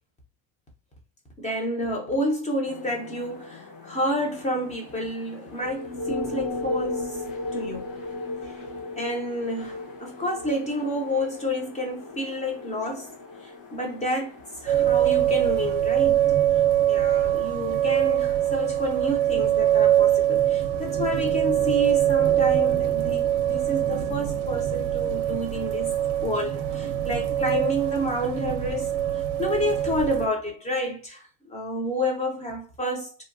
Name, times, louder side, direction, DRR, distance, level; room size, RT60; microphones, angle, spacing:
voice 1, 1.4-7.2 7.5-8.0 8.4-8.5 9.0-13.1 13.4-16.2 16.9-28.9 29.4-33.1, equal, 15° left, 0.6 m, -30 dB
sound 1, 2.6-15.8, left 2 dB, 55° left, 1.2 m, -36 dB
sound 2, 14.7-30.3, right 11 dB, 60° right, 0.5 m, -23 dB
2.8 x 2.2 x 2.5 m
cardioid pair, 155°, 39 cm